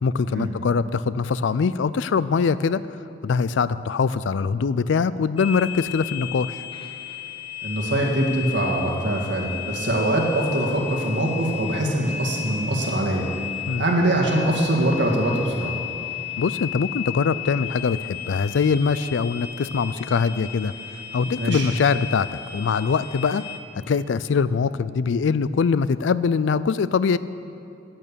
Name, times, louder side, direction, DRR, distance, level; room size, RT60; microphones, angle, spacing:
voice 1, 0.0-2.8 3.2-6.6 13.7-13.8 16.4-20.7 21.1-23.4 23.9-27.2, left 5 dB, 85° left, 16 dB, 0.4 m, -23 dB
sound 1, 5.4-23.6, left 11 dB, 30° left, 0.8 m, -34 dB
voice 2, 7.6-13.3 13.8-15.7 21.4-21.7, right 1 dB, 80° right, -1 dB, 1.8 m, -23 dB
12.0 x 8.9 x 6.9 m, 2.7 s
head